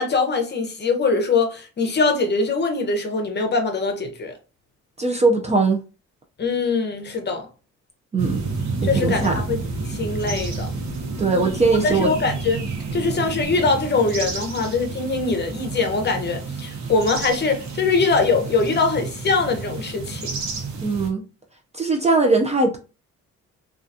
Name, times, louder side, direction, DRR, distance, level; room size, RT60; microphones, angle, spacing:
voice 1, 0.0-4.3 6.4-7.5 8.8-10.7 11.8-12.6 12.9-20.3, left 4 dB, 35° left, 0.7 m, -22 dB
voice 2, 5.0-5.8 8.1-8.4 8.8-9.4 11.2-12.1 20.8-21.2 21.7-22.8, right 3 dB, 25° right, 0.4 m, -20 dB
sound 1, 8.2-21.1, right 3 dB, 65° right, 0.9 m, -30 dB
2.4 x 2.2 x 2.6 m
cardioid pair, 90°, 30 cm